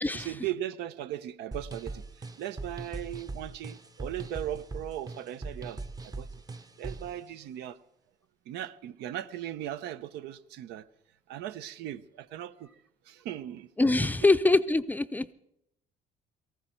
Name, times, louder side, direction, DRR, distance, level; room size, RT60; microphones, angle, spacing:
voice 1, 0.1-2.0 2.4-5.8 6.0-6.3 6.8-7.8 8.5-10.8 11.3-12.7 13.1-13.7 14.0-14.1, right 12 dB, 85° right, 0.7 m, -38 dB
sound 1, 1.5-7.2, right 3 dB, 20° right, 0.8 m, -40 dB
voice 2, 13.8-15.3, left 2 dB, 10° left, 0.5 m, -24 dB
18.5 x 14.5 x 4.5 m
cardioid pair, 110°, 17 cm